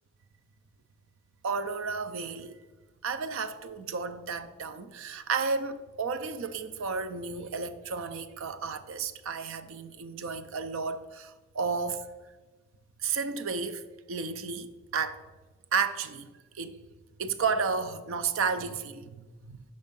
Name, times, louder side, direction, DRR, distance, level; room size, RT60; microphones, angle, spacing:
voice 1, 1.4-2.6 3.0-12.1 13.0-15.2 15.7-16.8 17.2-19.6, right 5 dB, 60° right, 0.5 m, -32 dB
5.4 x 5.3 x 5.2 m
head